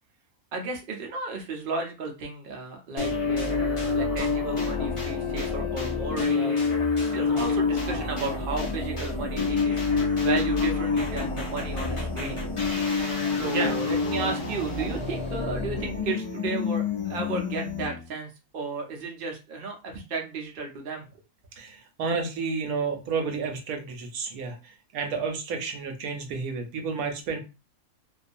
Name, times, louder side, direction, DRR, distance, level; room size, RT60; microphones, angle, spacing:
voice 1, 0.5-9.8 10.2-12.4 13.4-21.1, right 4 dB, 50° right, 2 dB, 0.7 m, -34 dB
sound 1, 3.0-18.1, left 4 dB, 30° left, 0.6 m, -27 dB
voice 2, 12.9-13.8 21.5-27.4, right 4 dB, 85° right, 4 dB, 1.1 m, -31 dB
2.5 x 2.3 x 2.5 m, 0.29 s
omnidirectional pair, 1.5 m